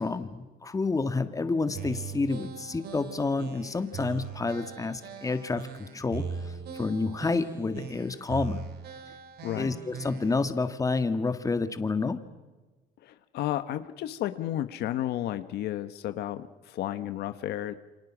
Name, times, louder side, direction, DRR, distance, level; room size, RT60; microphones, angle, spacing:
voice 1, 0.0-6.5 6.8-8.6 9.6-12.2, left 3 dB, 20° left, 9 dB, 1.9 m, -29 dB
sound 1, 1.7-10.5, right 6 dB, 70° right, 3.8 m, -40 dB
voice 2, 13.0-17.7, left 12 dB, 75° left, 11 dB, 1.2 m, -32 dB
29.0 x 25.5 x 6.2 m, 1.2 s
cardioid pair, 110°, 17 cm